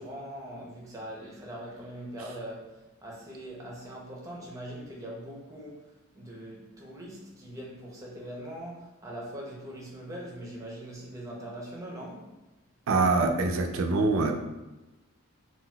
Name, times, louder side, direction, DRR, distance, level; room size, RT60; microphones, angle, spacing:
voice 1, 0.0-12.3, right 1 dB, 15° right, -3 dB, 0.6 m, -42 dB
voice 2, 12.9-14.3, right 3 dB, 70° right, 4 dB, 0.4 m, -24 dB
3.9 x 2.3 x 2.3 m, 1.0 s
head